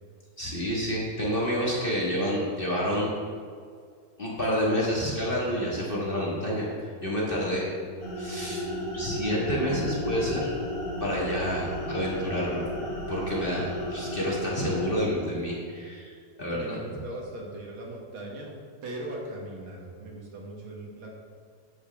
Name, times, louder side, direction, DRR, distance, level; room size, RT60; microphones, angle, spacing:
voice 1, 0.4-3.1 4.2-7.6 8.2-8.6 8.9-10.6 11.0-12.6 13.1-16.1 16.4-16.7, equal, 30° left, -5 dB, 0.9 m, -29 dB
sound 1, 8.0-15.5, equal, 50° left, 2.7 m, -34 dB
voice 2, 16.5-18.5 18.8-21.1, right 1 dB, 50° right, -1 dB, 1.8 m, -39 dB
11.5 x 8.2 x 3.5 m, 2.1 s
omnidirectional pair, 3.7 m